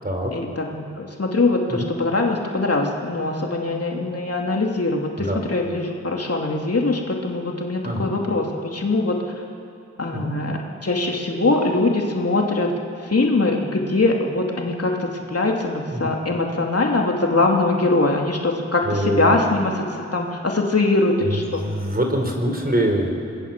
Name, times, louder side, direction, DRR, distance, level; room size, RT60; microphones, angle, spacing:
voice 1, 0.3-9.2 10.0-12.7 13.1-21.6, left 2 dB, 55° left, 0 dB, 3.0 m, -22 dB
voice 2, 18.8-19.4 21.3-23.1, right 1 dB, 30° right, 3 dB, 4.9 m, -24 dB
26.0 x 19.0 x 7.6 m, 2.4 s
cardioid pair, 40°, 29 cm